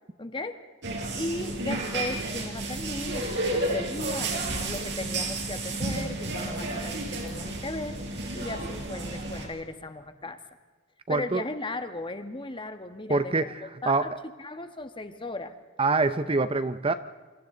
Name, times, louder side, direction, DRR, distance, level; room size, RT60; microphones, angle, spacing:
voice 1, 0.2-0.6 1.1-8.0 8.3-10.4 11.1-14.1 14.4-15.6, left 2 dB, 25° left, 8 dB, 1.6 m, -36 dB
sound 1, 0.8-9.5, right 2 dB, 60° right, 5.0 m, -31 dB
voice 2, 11.1-11.4 13.1-14.1 15.8-16.9, right 3 dB, 25° right, 12 dB, 0.7 m, -25 dB
28.5 x 26.5 x 3.9 m, 1.4 s
head